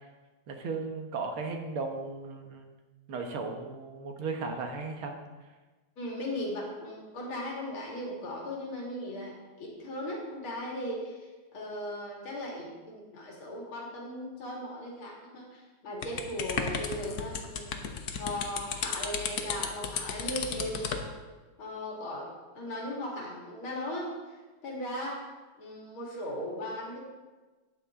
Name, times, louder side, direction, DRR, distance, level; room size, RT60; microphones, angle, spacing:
voice 1, 0.5-2.7 3.1-5.2, right 4 dB, 85° right, 4 dB, 2.1 m, -36 dB
voice 2, 6.0-11.3 11.5-17.8 18.2-21.1 21.6-24.4 24.6-25.2 25.6-27.0, left 1 dB, 85° left, -3 dB, 3.0 m, -37 dB
sound 1, 16.0-21.1, left 6 dB, 55° left, 1.2 m, -34 dB
12.5 x 9.1 x 3.7 m, 1.3 s
omnidirectional pair, 2.2 m